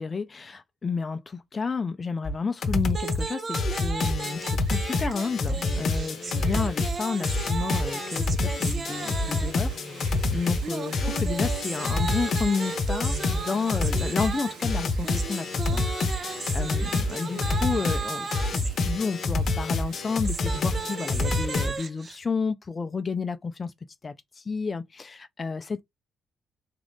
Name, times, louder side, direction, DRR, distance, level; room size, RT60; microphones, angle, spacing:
voice 1, 0.0-23.7 24.0-25.8, left 5 dB, 30° left, 0.5 m, -31 dB
sound 1, 2.2-2.3 2.6-3.2 3.5-21.7, left 2 dB, 55° left, 0.8 m, -27 dB
sound 2, 2.9-9.7 10.6-18.7 19.9-22.2, right 4 dB, 40° right, 0.6 m, -36 dB
Wind, 4.3-21.6, right 4 dB, 90° right, 1.9 m, -47 dB
3.7 x 2.5 x 3.5 m
cardioid pair, 90°, 0 cm